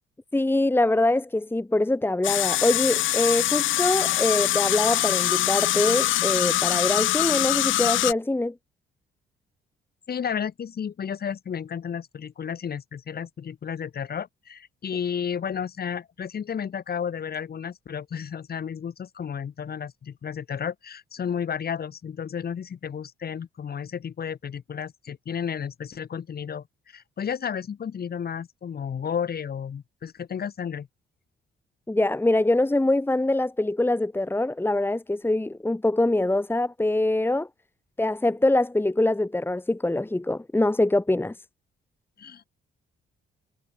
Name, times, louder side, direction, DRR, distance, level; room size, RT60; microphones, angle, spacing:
voice 1, 0.3-8.5 31.9-37.5 38.0-41.3, left 2 dB, 10° left, 2.0 m, -24 dB
sound 1, 2.2-8.1, left 14 dB, 80° left, 0.9 m, -23 dB
voice 2, 10.1-30.9 42.2-42.4, left 7 dB, 50° left, 4.7 m, -32 dB
cardioid pair, 90°, 20 cm